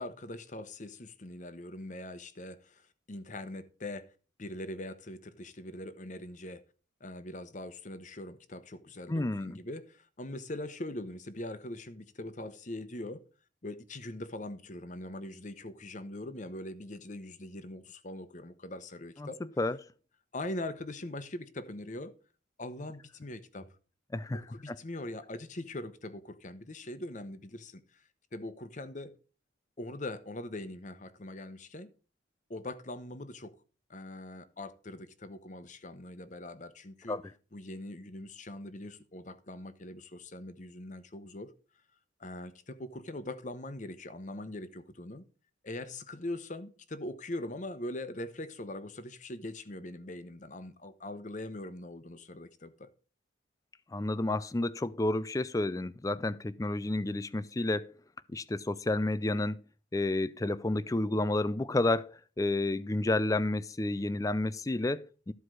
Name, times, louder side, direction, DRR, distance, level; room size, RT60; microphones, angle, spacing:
voice 1, 0.0-4.0 4.4-6.6 7.0-13.2 13.6-19.4 20.3-22.1 22.6-23.7 24.3-27.8 28.3-29.1 29.8-31.9 32.5-33.5 33.9-37.2 37.5-41.5 42.2-45.2 45.6-52.9, left 1 dB, 40° left, 0.9 m, -42 dB
voice 2, 9.1-9.6 19.2-19.8 24.1-24.4 24.7-24.8 37.1-37.2 53.9-57.9 58.3-59.6 59.9-65.3, left 2 dB, 15° left, 0.4 m, -30 dB
13.5 x 4.7 x 6.3 m
head